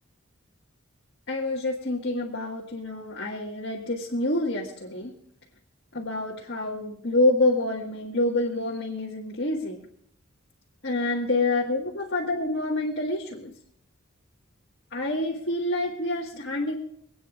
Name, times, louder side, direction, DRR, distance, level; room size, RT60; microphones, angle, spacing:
voice 1, 1.3-5.1 5.9-9.8 10.8-13.5 14.9-16.8, left 2 dB, 55° left, -3 dB, 1.8 m, -27 dB
26.5 x 9.2 x 2.6 m, 0.72 s
head